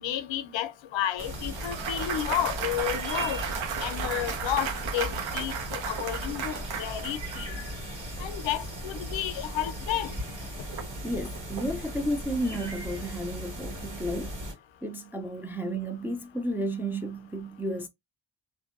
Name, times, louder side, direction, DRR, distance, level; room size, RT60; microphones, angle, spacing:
voice 1, 0.0-3.4 3.8-7.5 8.2-10.1, left 11 dB, 70° left, 0.6 m, -32 dB
sound 1, 1.2-14.5, equal, 40° right, 1.5 m, -37 dB
Clapping / Cheering / Applause, 1.2-7.4, right 6 dB, 75° right, 0.8 m, -34 dB
sound 2, 2.4-11.9, right 6 dB, 55° right, 1.0 m, -52 dB
voice 2, 11.0-14.4 14.8-17.9, right 1 dB, 5° right, 0.3 m, -32 dB
2.6 x 2.1 x 2.4 m
cardioid pair, 80°, 47 cm